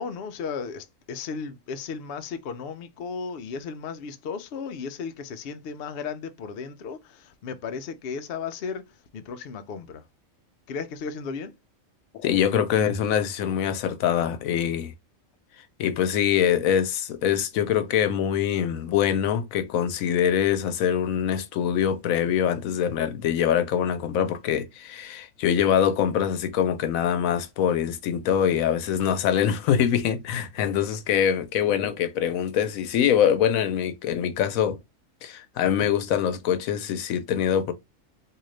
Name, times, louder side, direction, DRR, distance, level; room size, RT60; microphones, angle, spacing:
voice 1, 0.0-10.0 10.7-11.5, left 5 dB, 60° left, 0.6 m, -35 dB
voice 2, 12.2-14.9 15.8-34.8 35.2-37.7, left 9 dB, 85° left, 1.0 m, -24 dB
3.7 x 2.7 x 3.1 m
omnidirectional pair, 1.4 m